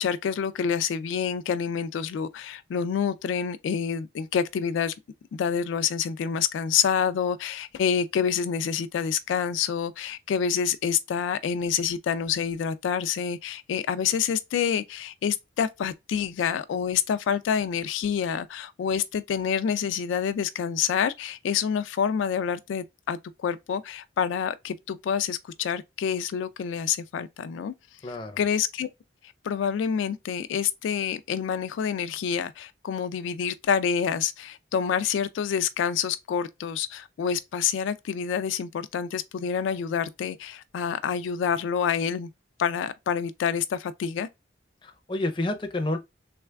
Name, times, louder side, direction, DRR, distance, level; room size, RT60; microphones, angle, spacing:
voice 1, 0.0-4.9 5.3-27.7 28.0-28.9 29.4-42.3 42.6-44.3, left 7 dB, 80° left, 0.3 m, -27 dB
voice 2, 28.0-28.4 44.8-46.0, left 2 dB, 25° left, 0.5 m, -29 dB
3.3 x 3.2 x 2.2 m
head